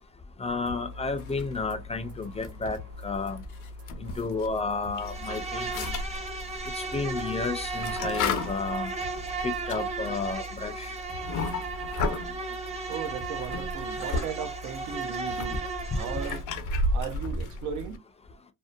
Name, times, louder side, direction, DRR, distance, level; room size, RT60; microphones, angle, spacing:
voice 1, 0.4-2.8 3.0-3.4 4.0-5.9 6.8-8.9 9.4-10.9, left 4 dB, 20° left, 0.4 m, -32 dB
sound 1, 0.7-17.4, left 2 dB, 50° right, 1.1 m, -44 dB
sound 2, 1.2-1.9 2.3-4.6 4.9-12.3 13.0-14.3 14.6-18.0, left 2 dB, 80° left, 0.6 m, -34 dB
Insect, 5.0-16.4, right 4 dB, 20° right, 0.7 m, -35 dB
voice 2, 12.9-15.7 15.9-16.4 16.9-18.0, right 8 dB, 75° right, 0.5 m, -36 dB
2.7 x 2.1 x 2.4 m
cardioid pair, 90°, 30 cm